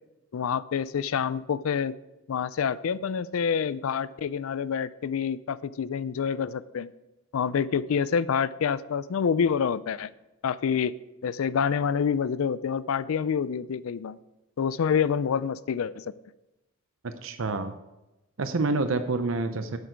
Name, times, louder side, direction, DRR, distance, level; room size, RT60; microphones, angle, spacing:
voice 1, 0.3-1.9 2.3-6.9 7.3-10.1 10.4-11.0 11.2-14.2 14.6-16.1, left 7 dB, 85° left, 17 dB, 0.4 m, -27 dB
voice 2, 17.0-17.7 18.4-19.8, right 3 dB, 75° right, 9 dB, 0.7 m, -28 dB
11.0 x 8.1 x 4.6 m, 0.98 s
head